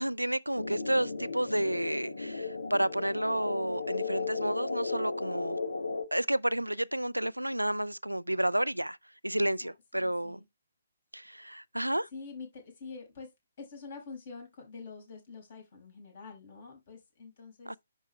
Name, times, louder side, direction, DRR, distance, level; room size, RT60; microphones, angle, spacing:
voice 1, 0.0-5.6 6.1-9.0 9.2-10.4 11.1-12.1 17.7-17.8, right 1 dB, 90° right, 0.4 m, -31 dB
sound 1, 0.6-6.1, left 3 dB, 70° left, 1.2 m, -35 dB
voice 2, 9.3-10.4 12.1-13.3 13.6-17.8, left 4 dB, 45° left, 5.4 m, -46 dB
11.0 x 4.5 x 3.2 m
figure-of-eight pair, 135°, 0 cm